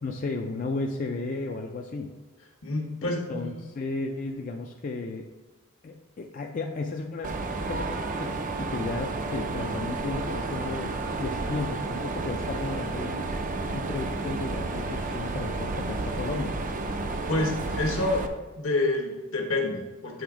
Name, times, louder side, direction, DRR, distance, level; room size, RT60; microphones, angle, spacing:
voice 1, 0.0-2.1 3.0-5.3 5.8-7.3 7.6-10.9 11.2-13.3 13.7-16.6, left 3 dB, 40° left, 2 dB, 0.4 m, -34 dB
voice 2, 2.6-3.5 17.3-18.3 18.6-20.2, left 2 dB, 75° left, 1 dB, 1.2 m, -28 dB
Mechanisms, 7.2-18.3, right 3 dB, 40° right, 0.4 m, -31 dB
sound 1, 9.1-17.5, left 2 dB, 85° right, 2.1 m, -49 dB
7.9 x 3.4 x 4.9 m, 1.2 s
head